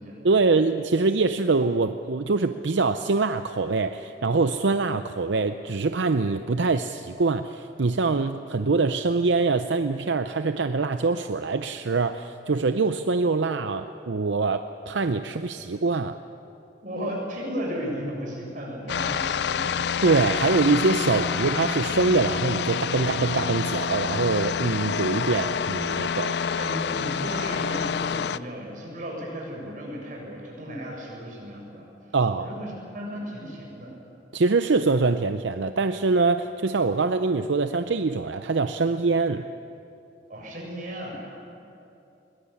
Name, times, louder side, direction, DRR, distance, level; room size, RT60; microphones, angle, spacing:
voice 1, 0.2-16.2 20.0-26.4 32.1-32.5 34.3-39.5, right 3 dB, 75° right, 9 dB, 0.6 m, -24 dB
voice 2, 16.8-19.8 21.1-21.4 26.6-33.9 40.3-41.3, equal, 45° right, -2 dB, 7.1 m, -35 dB
sound 1, 18.9-28.4, left 6 dB, 60° left, 0.4 m, -27 dB
22.0 x 19.5 x 8.6 m, 2.7 s
head